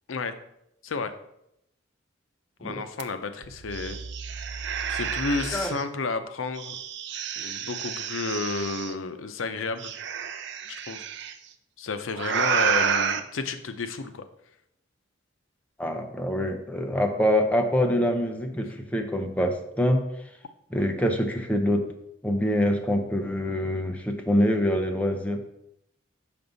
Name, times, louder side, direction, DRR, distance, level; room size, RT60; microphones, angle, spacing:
voice 1, 2.6-4.0 4.9-6.8 7.4-9.9 10.7-11.0 11.8-14.2, left 4 dB, 90° left, 9 dB, 0.6 m, -31 dB
sound 1, 3.0-3.1 3.4-5.8 6.6-8.9 9.8-11.3 12.1-13.2, right 7 dB, 60° right, 0.5 m, -30 dB
voice 2, 15.8-20.0 20.7-21.8 22.2-25.4, equal, 5° left, 3 dB, 0.7 m, -25 dB
5.9 x 5.3 x 4.0 m, 0.80 s
head